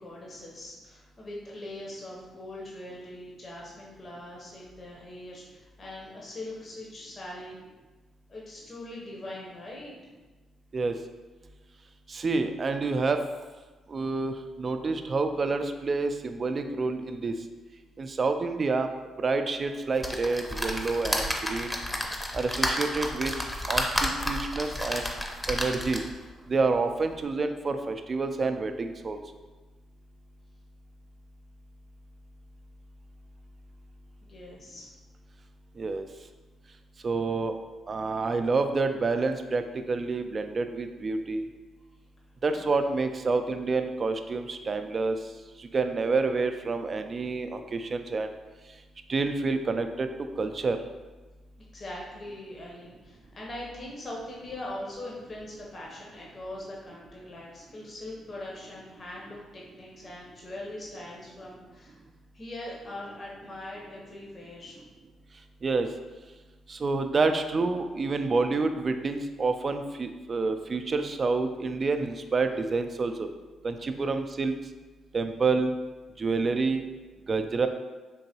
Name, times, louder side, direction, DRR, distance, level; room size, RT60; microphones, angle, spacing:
voice 1, 0.0-7.6 8.3-9.9 34.3-34.9 42.5-42.7 51.7-62.0 62.3-64.8, left 1 dB, 45° left, -3 dB, 0.7 m, -41 dB
voice 2, 12.1-13.2 13.9-17.3 18.0-18.9 19.2-21.8 22.3-23.3 23.7-25.0 25.5-26.0 26.5-29.2 35.8-36.1 37.0-37.5 37.9-41.5 42.4-45.2 45.7-48.3 49.1-50.1 50.4-50.8 65.6-65.9 66.7-73.3 73.6-74.6 75.1-75.7 76.2-76.8 77.3-77.7, right 3 dB, 45° right, 7 dB, 0.3 m, -28 dB
sound 1, 20.0-26.2 26.8-26.9 27.1-27.2, left 1 dB, 15° left, 0.6 m, -31 dB
3.8 x 2.9 x 2.8 m, 1.2 s
hypercardioid pair, 45°, 0 cm